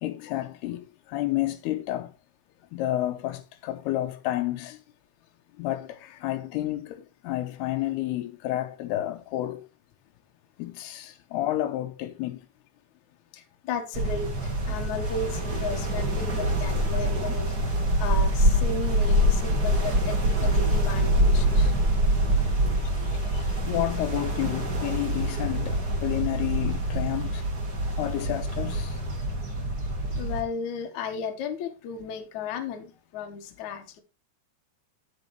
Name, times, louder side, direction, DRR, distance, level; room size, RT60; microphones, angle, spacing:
voice 1, 0.0-2.1 2.7-4.8 5.6-9.7 10.6-12.4 22.4-23.1 23.6-27.4 28.0-29.0, left 15 dB, 85° left, 2.9 m, -30 dB
voice 2, 13.3-21.7 22.8-23.5 30.2-34.0, left 4 dB, 60° left, 2.3 m, -35 dB
sound 1, 13.9-30.4, right 1 dB, 35° right, 1.6 m, -25 dB
10.0 x 8.1 x 3.1 m
omnidirectional pair, 4.6 m